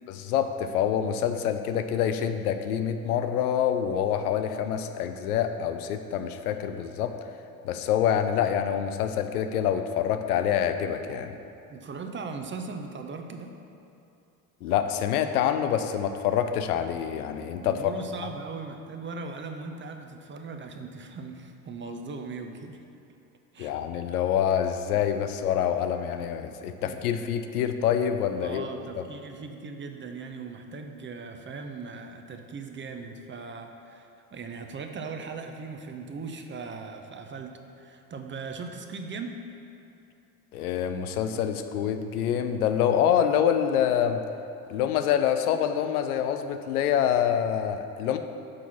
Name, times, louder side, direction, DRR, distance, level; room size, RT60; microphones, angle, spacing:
voice 1, 0.1-7.1 7.6-11.3 14.6-17.8 23.6-28.6 29.0-29.1 40.5-44.2 44.7-48.2, left 9 dB, 80° left, 8 dB, 0.6 m, -26 dB
voice 2, 11.7-13.6 17.6-22.8 23.5-23.7 26.8-27.1 28.4-39.4, right 4 dB, 25° right, 5 dB, 0.6 m, -39 dB
6.1 x 4.6 x 5.8 m, 2.6 s
hypercardioid pair, 60°, 44 cm